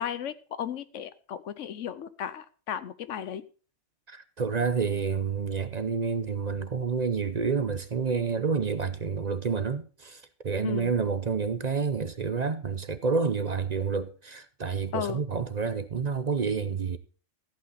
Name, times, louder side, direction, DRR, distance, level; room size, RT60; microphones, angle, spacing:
voice 1, 0.0-3.4 10.6-10.9 14.9-15.2, left 9 dB, 90° left, 1.2 m, -35 dB
voice 2, 4.1-17.0, right 5 dB, 45° right, 0.7 m, -29 dB
14.0 x 8.5 x 4.1 m
omnidirectional pair, 1.2 m